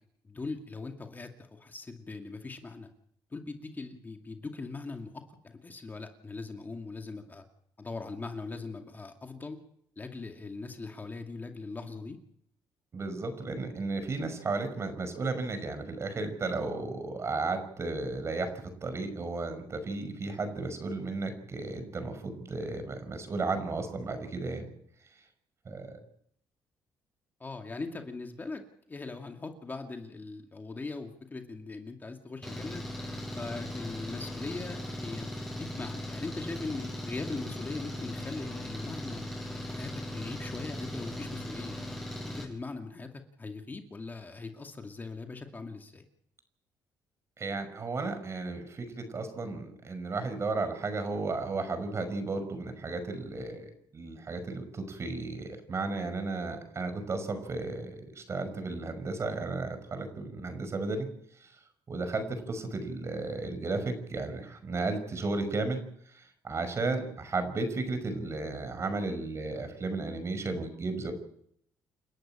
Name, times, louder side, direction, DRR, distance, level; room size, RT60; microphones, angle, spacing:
voice 1, 0.2-2.9 3.3-7.4 7.8-9.6 10.0-12.2 27.4-32.8 33.4-39.3 39.7-41.8 42.3-46.0, left 3 dB, 25° left, 4 dB, 2.3 m, -40 dB
voice 2, 12.9-18.5 18.8-24.7 25.7-26.0 47.4-61.1 61.4-61.5 61.9-65.8 66.1-71.1, right 3 dB, 40° right, 9 dB, 5.4 m, -34 dB
Engine, 32.4-42.4, left 1 dB, 5° left, 7.1 m, -38 dB
29.5 x 11.5 x 8.9 m, 0.70 s
cardioid pair, 100°, 7 cm